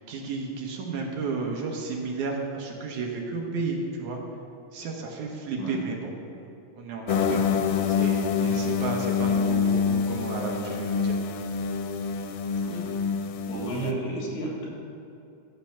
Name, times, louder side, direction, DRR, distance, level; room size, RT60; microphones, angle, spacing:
voice 1, 0.0-4.2 4.7-6.1 6.4-7.4 7.9-11.2, right 4 dB, 70° right, 1 dB, 2.5 m, -33 dB
sound 1, 7.1-13.9, left 6 dB, 90° left, 2.3 m, -26 dB
voice 2, 13.5-14.7, right 1 dB, 60° left, -4 dB, 3.9 m, -32 dB
13.5 x 6.8 x 5.8 m, 2.7 s
omnidirectional pair, 3.8 m